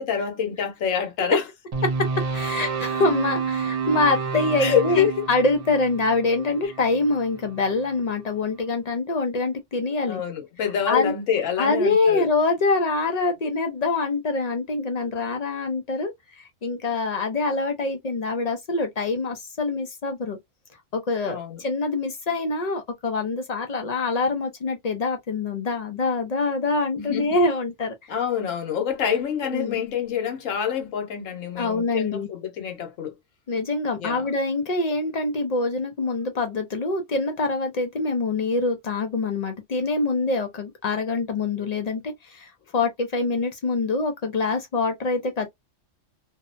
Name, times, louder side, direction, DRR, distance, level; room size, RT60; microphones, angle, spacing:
voice 1, 0.0-1.4 4.6-5.2 10.1-12.3 21.3-21.6 26.9-27.4 28.1-33.1 34.0-34.3, left 8 dB, 85° left, 1.2 m, -26 dB
sound 1, 1.7-7.9, right 5 dB, 55° right, 0.4 m, -29 dB
voice 2, 2.3-10.2 10.9-11.1 11.6-20.4 20.9-28.1 29.5-29.8 31.6-32.3 33.5-45.5, left 3 dB, 60° left, 0.4 m, -25 dB
2.7 x 2.1 x 2.4 m
omnidirectional pair, 1.3 m